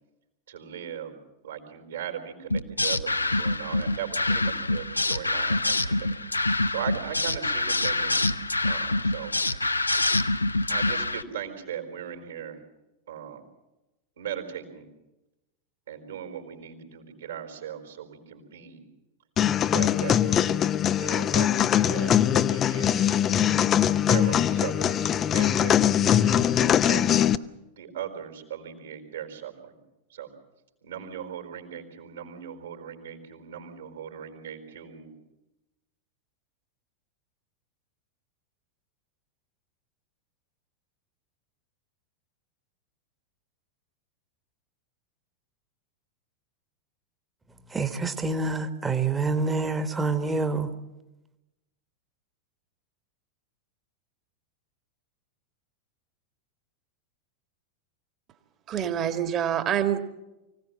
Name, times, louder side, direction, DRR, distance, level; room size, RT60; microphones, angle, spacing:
voice 1, 0.5-1.2 1.4-8.3 8.6-9.6 10.7-12.6 13.1-13.4 14.2-14.9 15.9-18.8 19.7-20.7 21.0-23.0 24.1-27.0 27.8-29.8 30.1-30.3 30.8-35.1, right 9 dB, 65° right, 4.1 m, -38 dB
sound 1, 2.5-11.2, left 2 dB, 80° left, 0.7 m, -26 dB
sound 2, 19.4-27.4, left 10 dB, 30° left, 0.6 m, -22 dB
voice 2, 47.7-50.7, right 3 dB, 15° right, 1.4 m, -27 dB
voice 3, 58.7-60.0, right 9 dB, 30° right, 1.7 m, -26 dB
24.5 x 17.0 x 7.5 m
figure-of-eight pair, 90°, 0 cm